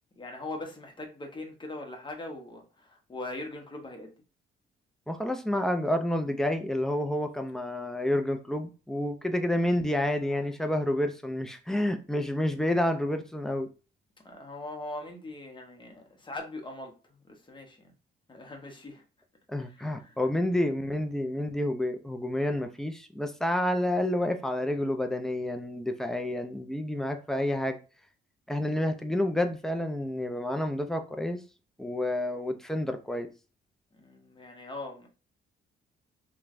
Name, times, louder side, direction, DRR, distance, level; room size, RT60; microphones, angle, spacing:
voice 1, 0.2-4.1 14.2-16.9 17.2-17.9 18.3-19.0 19.6-20.1 33.9-35.1, left 2 dB, 25° left, 0.9 m, -41 dB
voice 2, 5.1-13.7 19.5-27.8 28.5-31.4 31.8-33.3, left 1 dB, ahead, 0.4 m, -29 dB
3.0 x 2.2 x 2.5 m
cardioid pair, 90°, 20 cm